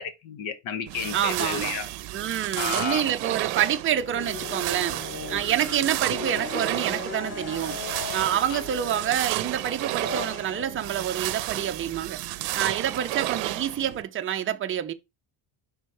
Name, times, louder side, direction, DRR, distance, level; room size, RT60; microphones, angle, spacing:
voice 1, 0.0-1.9 2.6-3.1 8.5-8.6, left 7 dB, 70° left, 1.2 m, -32 dB
sound 1, 0.9-14.0, right 17 dB, 80° right, 0.6 m, -32 dB
voice 2, 1.1-1.7 2.1-5.0 5.3-7.8 8.1-12.2 12.5-14.9, right 10 dB, 25° right, 0.4 m, -27 dB
sound 2, 3.9-12.0, left 4 dB, 25° left, 4.3 m, -38 dB
5.7 x 3.6 x 4.7 m
cardioid pair, 155°, 50 cm